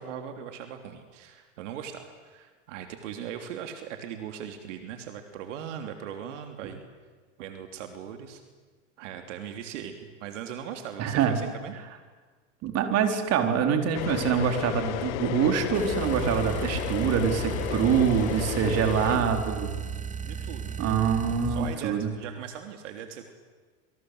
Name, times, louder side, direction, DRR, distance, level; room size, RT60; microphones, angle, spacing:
voice 1, 0.0-6.8 7.4-8.4 9.0-11.7 18.6-19.4 20.2-20.8 21.4-23.3, right 8 dB, 70° right, 6 dB, 3.3 m, -39 dB
voice 2, 11.0-11.4 12.6-19.7 20.8-22.1, right 7 dB, 40° right, 5 dB, 4.4 m, -25 dB
sound 1, 13.9-19.2, left 18 dB, 65° left, 1.0 m, -33 dB
sound 2, 15.7-21.8, right 6 dB, 20° right, 2.2 m, -35 dB
28.0 x 25.0 x 8.0 m, 1.4 s
hypercardioid pair, 115°, 38 cm